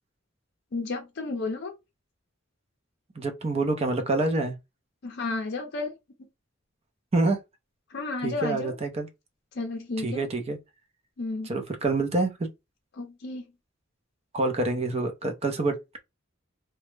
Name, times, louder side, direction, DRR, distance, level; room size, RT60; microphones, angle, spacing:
voice 1, 0.7-1.8 5.0-5.9 7.9-8.7 9.5-10.3 11.2-11.5 12.9-13.4, left 3 dB, 60° left, 0.5 m, -32 dB
voice 2, 3.2-4.5 7.1-7.4 8.2-9.1 10.0-10.6 11.5-12.5 14.3-15.7, right 2 dB, 30° right, 0.5 m, -26 dB
2.2 x 2.0 x 3.1 m
head